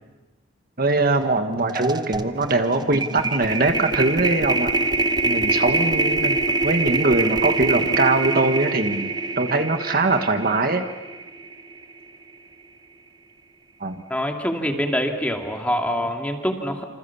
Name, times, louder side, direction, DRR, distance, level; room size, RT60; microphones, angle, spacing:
voice 1, 0.8-4.7 5.2-10.8 13.8-13.9, right 2 dB, 50° right, 7 dB, 1.5 m, -22 dB
sound 1, 1.2-1.4 1.7-11.9, right 3 dB, 20° right, 0.8 m, -24 dB
voice 2, 14.1-16.8, equal, 5° left, 3 dB, 2.4 m, -25 dB
27.5 x 27.0 x 7.1 m, 1.1 s
head